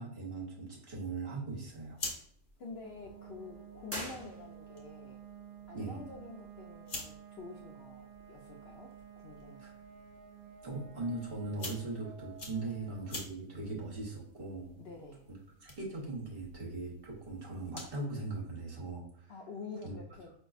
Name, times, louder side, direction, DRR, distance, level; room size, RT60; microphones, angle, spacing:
voice 1, 0.0-2.0 5.7-6.0 9.6-9.7 10.6-14.8 15.6-19.3 19.8-19.9, right 2 dB, 50° right, -3 dB, 1.1 m, -40 dB
sound 1, 1.7-18.1, left 2 dB, 45° left, 1.1 m, -50 dB
voice 2, 2.6-5.2 5.7-9.7 12.6-12.7 14.8-15.2 19.3-20.3, left 4 dB, 65° left, 0 dB, 0.7 m, -48 dB
sound 2, 2.8-17.4, right 8 dB, 90° right, 1.0 m, -54 dB
sound 3, 3.9-4.9, equal, 15° right, 0.6 m, -43 dB
5.2 x 2.6 x 2.4 m, 0.64 s
omnidirectional pair, 1.4 m